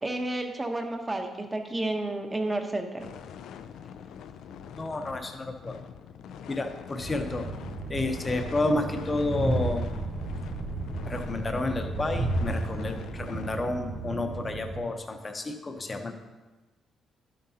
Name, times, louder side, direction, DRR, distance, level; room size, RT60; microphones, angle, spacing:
voice 1, 0.0-3.1, right 2 dB, 15° right, 4 dB, 0.9 m, -31 dB
sound 1, 3.0-13.6, left 8 dB, 85° left, 0.4 m, -45 dB
voice 2, 4.7-5.8 6.5-7.5 7.9-9.9 11.1-16.1, left 2 dB, 25° left, 6 dB, 0.8 m, -30 dB
Train, 7.0-14.8, right 2 dB, 45° right, 1.6 m, -33 dB
11.5 x 7.4 x 2.8 m, 1.2 s
cardioid pair, 140°, 0 cm